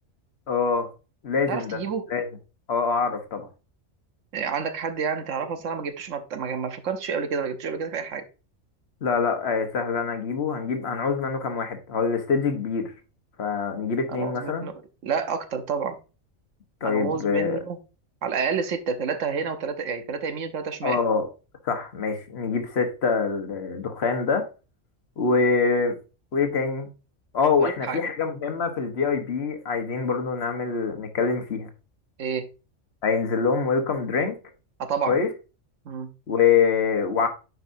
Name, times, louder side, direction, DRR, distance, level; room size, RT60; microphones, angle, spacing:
voice 1, 0.5-0.9 1.2-1.8 2.1-2.3 2.7-3.5 9.0-12.9 13.4-14.7 16.8-17.6 20.8-21.3 21.6-24.5 25.2-26.0 26.3-26.9 27.3-31.7 33.0-34.4 35.1-35.3 36.3-37.3, left 5 dB, 55° left, 1.3 m, -25 dB
voice 2, 1.5-2.0 4.3-8.2 14.1-14.7 15.0-16.0 16.8-17.8 18.2-21.0 27.6-28.0 32.2-32.4 34.8-35.2 35.8-36.1, right 6 dB, 70° right, 1.2 m, -29 dB
9.3 x 4.9 x 2.6 m
omnidirectional pair, 1.3 m